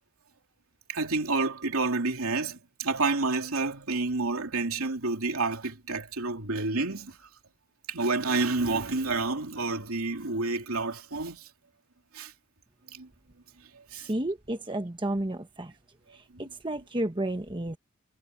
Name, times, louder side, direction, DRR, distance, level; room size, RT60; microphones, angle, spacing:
voice 1, 0.9-7.2 7.9-11.5 12.1-12.3 12.9-13.1 13.9-14.1 16.3-16.4, right 3 dB, 80° right, 2.9 m, -29 dB
voice 2, 14.0-15.7 16.1-17.8, right 1 dB, 20° right, 1.1 m, -32 dB
head